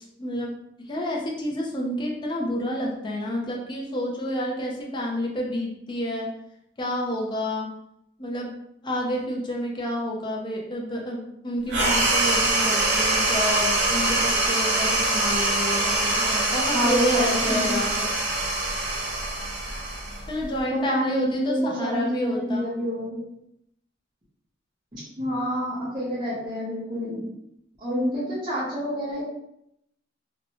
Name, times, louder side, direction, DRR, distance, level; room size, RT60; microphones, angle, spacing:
voice 1, 0.2-6.3 6.8-7.7 8.2-8.5 8.8-18.1 20.3-22.7, equal, 25° left, -2 dB, 0.5 m, -29 dB
sound 1, 11.7-20.6, right 2 dB, 75° right, 0.8 m, -24 dB
voice 2, 16.7-17.8 20.7-23.3 24.9-27.2 27.8-29.2, equal, 25° right, -11 dB, 0.7 m, -27 dB
2.6 x 2.1 x 2.9 m, 0.77 s
head